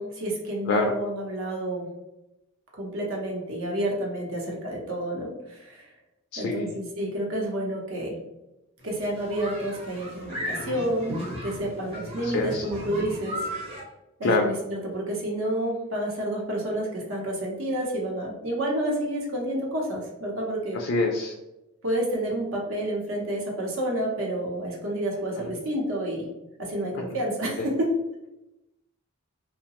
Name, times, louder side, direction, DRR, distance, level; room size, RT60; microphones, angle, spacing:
voice 1, 0.0-1.9 2.8-5.9 6.4-8.2 8.8-11.2 11.4-13.5 14.2-20.8 21.8-26.3 26.6-27.9, right 1 dB, 70° right, -1 dB, 0.7 m, -29 dB
voice 2, 6.3-6.7 10.6-10.8 12.2-12.6 14.2-14.5 20.7-21.3 25.4-25.5 27.6-27.7, left 3 dB, 60° left, 1 dB, 0.3 m, -26 dB
sound 1, 8.8-13.8, equal, 25° right, 0.7 m, -36 dB
2.7 x 2.1 x 2.9 m, 0.93 s
head